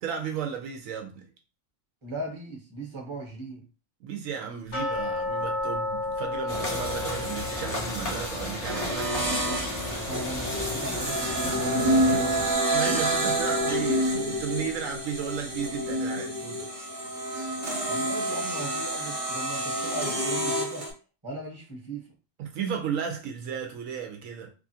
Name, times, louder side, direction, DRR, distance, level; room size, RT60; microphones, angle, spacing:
voice 1, 0.0-1.3 4.0-9.1 12.7-16.7 22.4-24.5, right 7 dB, 80° right, 1.0 m, -34 dB
voice 2, 2.0-3.6 9.9-12.6 17.9-20.9 21.2-22.1, right 2 dB, 25° right, 1.0 m, -38 dB
sound 1, 4.7-11.6 11.9-12.0 12.5-12.6 13.1-13.2, left 2 dB, 85° left, 1.5 m, -34 dB
sound 2, 6.5-12.5, left 1 dB, 35° left, 0.8 m, -34 dB
sound 3, 8.6-20.9, right 1 dB, 50° right, 1.1 m, -28 dB
3.1 x 2.4 x 2.7 m
omnidirectional pair, 1.4 m